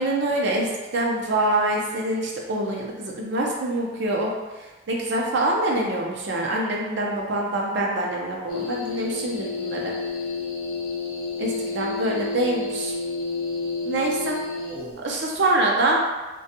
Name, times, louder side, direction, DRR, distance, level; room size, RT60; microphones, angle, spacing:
voice 1, 0.0-4.3 4.9-9.9 11.4-12.9 13.8-14.4 15.0-16.0, right 1 dB, 60° right, -1 dB, 0.5 m, -25 dB
sound 1, 8.5-15.0, left 3 dB, 45° left, 0.5 m, -30 dB
2.6 x 2.2 x 2.6 m, 1.2 s
head